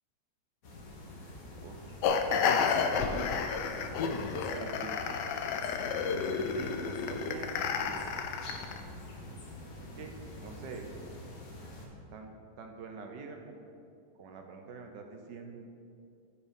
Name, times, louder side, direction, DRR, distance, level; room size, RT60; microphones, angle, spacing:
sound 1, 0.6-11.9, left 1 dB, 55° left, 1.6 m, -46 dB
voice 1, 1.6-1.9 2.9-3.1 3.7-5.2 6.3-8.1 9.9-10.9 12.1-13.7 14.2-15.6, right 4 dB, 90° right, 3 dB, 1.5 m, -45 dB
sound 2, 2.0-8.8, left 6 dB, 80° left, 1.2 m, -31 dB
9.9 x 4.6 x 5.2 m, 2.4 s
omnidirectional pair, 1.8 m